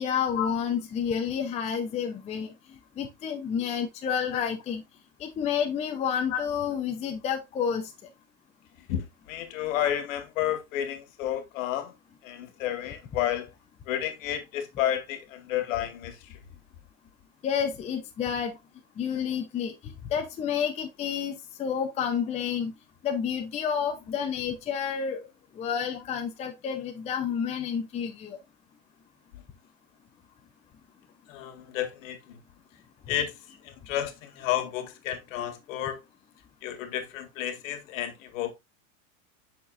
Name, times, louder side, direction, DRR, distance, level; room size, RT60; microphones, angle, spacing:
voice 1, 0.0-2.5 3.0-4.8 5.2-7.9 17.4-18.6 19.0-22.7 23.0-25.2 25.6-28.4, left 7 dB, 15° left, 0.7 m, -30 dB
voice 2, 8.9-11.9 12.2-13.5 13.9-16.4 25.9-26.0 29.3-29.4 31.3-32.4 33.1-33.3 33.6-36.0 36.6-38.5, left 11 dB, 65° left, 1.9 m, -31 dB
8.3 x 6.1 x 2.5 m
supercardioid pair, 155°, 42 cm